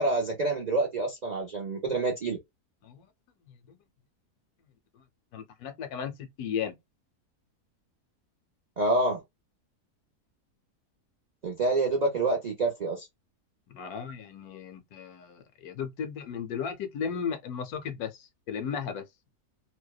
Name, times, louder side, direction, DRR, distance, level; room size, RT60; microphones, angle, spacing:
voice 1, 0.0-2.4 8.8-9.2 11.4-13.1, right 2 dB, 60° right, 0.4 m, -27 dB
voice 2, 3.5-3.8 5.3-6.8 13.7-19.1, left 7 dB, 75° left, 1.0 m, -35 dB
2.7 x 2.1 x 2.2 m
omnidirectional pair, 1.7 m